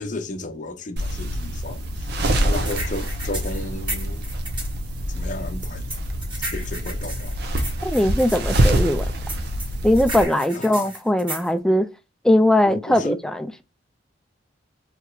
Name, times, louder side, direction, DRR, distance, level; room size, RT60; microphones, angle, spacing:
voice 1, 0.0-2.1 2.4-4.2 5.1-5.8 6.5-7.8 10.5-10.9 12.7-13.2, left 2 dB, 40° left, 0.7 m, -33 dB
sound 1, 1.0-10.2, right 1 dB, 60° right, 0.7 m, -25 dB
sound 2, 2.2-4.7 5.6-8.4 9.3-11.5, right 2 dB, 25° right, 1.3 m, -34 dB
voice 2, 7.8-9.1 9.8-11.9 12.2-13.6, left 1 dB, 5° left, 0.3 m, -20 dB
4.3 x 2.9 x 2.2 m
head